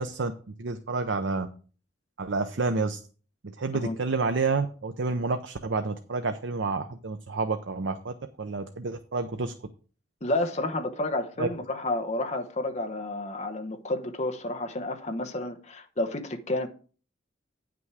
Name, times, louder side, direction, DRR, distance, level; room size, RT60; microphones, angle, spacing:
voice 1, 0.0-1.5 2.2-3.0 3.4-9.5 11.4-11.5, right 3 dB, 85° right, 0.7 m, -29 dB
voice 2, 10.2-16.7, left 2 dB, 40° left, 1.0 m, -30 dB
9.4 x 6.1 x 4.8 m
head